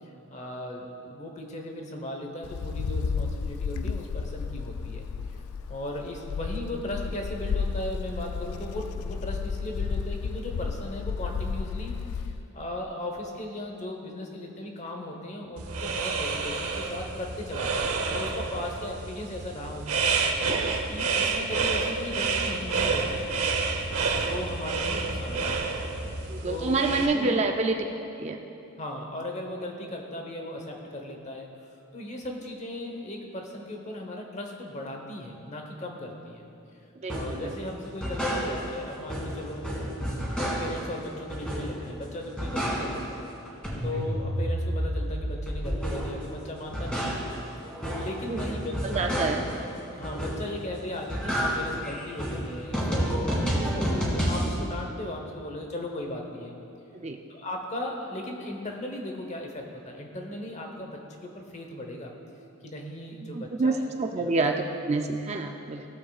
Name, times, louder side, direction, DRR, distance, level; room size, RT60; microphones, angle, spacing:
voice 1, 0.3-5.1 5.7-20.1 20.9-23.3 24.1-25.9 26.4-27.5 28.8-31.5 31.9-36.5 37.1-39.7 40.3-43.3 43.8-47.2 47.9-49.0 49.3-56.5 57.3-62.1 62.6-63.9 64.2-64.3 65.5-65.6, left 1 dB, 30° left, 2 dB, 1.0 m, -37 dB
Wind, 2.4-12.4, left 5 dB, 85° left, 0.3 m, -32 dB
sound 1, 15.6-27.1, right 4 dB, 85° right, 0.8 m, -29 dB
voice 2, 26.3-27.8 28.2-28.4 37.0-37.6 48.2-48.4 48.8-49.4 56.9-57.2 63.3-65.9, right 3 dB, 30° right, 4 dB, 0.4 m, -27 dB
sound 2, 37.1-37.4 37.8-38.8 39.1-40.9 41.3-41.9 42.2-43.2 43.5-46.2 46.6-49.6 50.0-50.6 50.9-54.5, equal, 5° left, 1.9 m, -30 dB
17.0 x 7.3 x 2.4 m, 2.8 s
head